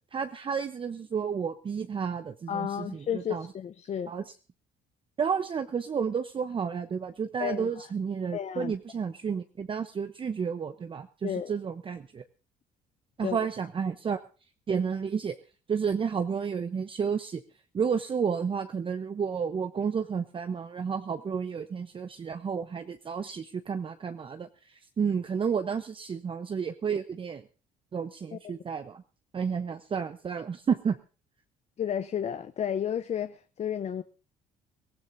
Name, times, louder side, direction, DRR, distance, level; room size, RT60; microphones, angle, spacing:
voice 1, 0.1-3.5 4.1-4.2 5.2-12.2 13.2-14.2 14.7-15.4 15.7-17.4 17.7-27.4 27.9-29.0 29.3-31.0, right 6 dB, 30° right, 0.8 m, -31 dB
voice 2, 2.5-4.1 7.4-7.9 8.3-8.7 11.2-11.5 13.2-13.4 28.3-28.6 31.8-34.0, left 9 dB, 40° left, 0.7 m, -32 dB
23.0 x 15.0 x 2.7 m
cardioid pair, 110°, 17 cm